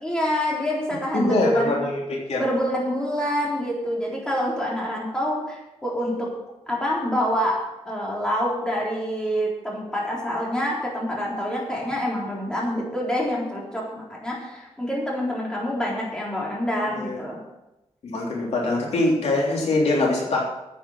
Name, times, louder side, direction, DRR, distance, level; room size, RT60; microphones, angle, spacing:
voice 1, 0.0-1.7 2.3-5.6 5.8-6.3 6.7-17.4, equal, 5° left, -4 dB, 3.9 m, -26 dB
voice 2, 1.1-2.4 16.9-17.1 18.0-20.4, left 2 dB, 75° left, -2 dB, 3.3 m, -23 dB
10.0 x 8.9 x 7.2 m, 0.95 s
wide cardioid pair, 145°, 11 cm